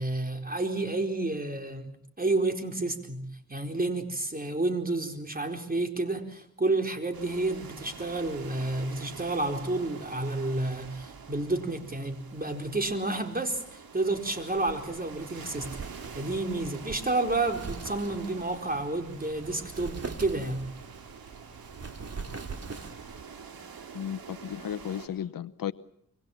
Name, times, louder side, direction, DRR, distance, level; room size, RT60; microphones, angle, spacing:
voice 1, 0.0-20.7, right 2 dB, 25° right, 4.4 m, -30 dB
sound 1, 7.1-25.1, right 6 dB, 80° right, 4.3 m, -46 dB
Wind, 14.5-23.2, right 4 dB, 45° right, 2.9 m, -43 dB
voice 2, 23.9-25.7, left 10 dB, 70° left, 1.0 m, -34 dB
25.5 x 24.0 x 7.3 m
cardioid pair, 70°, 35 cm